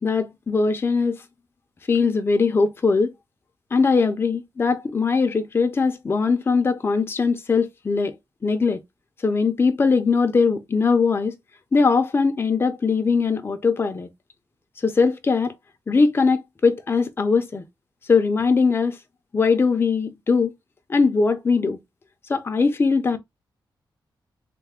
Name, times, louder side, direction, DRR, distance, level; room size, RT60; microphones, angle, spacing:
voice 1, 0.0-1.2 1.9-3.1 3.7-8.1 8.4-8.8 9.2-11.3 11.7-14.1 14.8-15.5 15.9-17.6 18.1-19.0 19.3-20.5 20.9-21.8 22.3-23.2, left 4 dB, 30° left, 0.5 m, -20 dB
3.3 x 2.2 x 3.5 m
cardioid pair, 105°, 8 cm